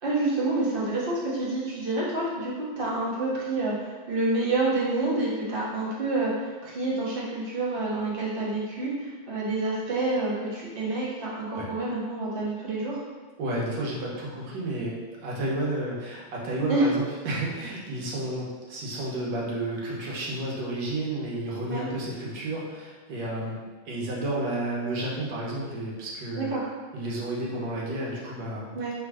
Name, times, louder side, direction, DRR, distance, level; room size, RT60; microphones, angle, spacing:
voice 1, 0.0-13.0 16.7-16.9 21.7-21.9 26.4-26.7 28.7-28.9, right 2 dB, 45° right, -6 dB, 0.7 m, -28 dB
voice 2, 13.4-23.6 23.9-26.5 26.9-28.8, right 1 dB, 65° right, -4 dB, 1.5 m, -31 dB
3.5 x 2.8 x 4.7 m, 1.4 s
omnidirectional pair, 2.2 m